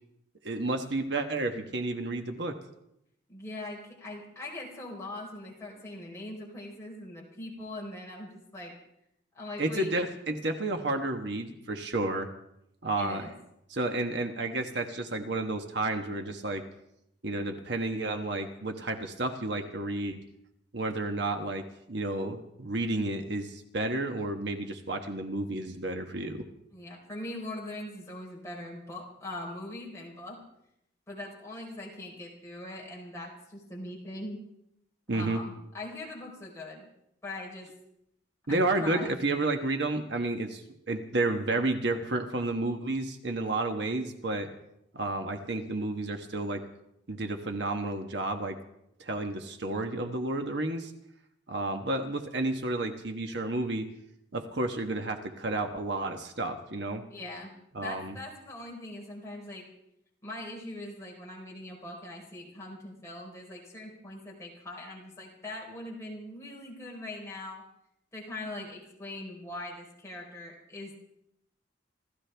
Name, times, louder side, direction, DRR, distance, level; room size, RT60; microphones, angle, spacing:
voice 1, 0.4-2.6 9.6-12.3 12.8-13.3 13.7-16.6 17.2-20.2 20.7-26.4 35.1-35.4 38.5-44.5 44.9-46.6 47.1-48.6 49.0-50.9 51.5-53.9 54.3-57.0 57.7-58.2, right 2 dB, 60° right, 5 dB, 1.2 m, -31 dB
voice 2, 3.3-8.7 9.3-9.9 13.0-13.3 26.7-30.4 31.1-34.4 35.1-36.9 37.2-37.7 38.5-39.2 57.1-57.5 57.8-59.7 60.2-67.6 68.1-71.0, left 1 dB, 15° left, -3 dB, 4.0 m, -41 dB
27.5 x 14.0 x 3.4 m, 0.79 s
head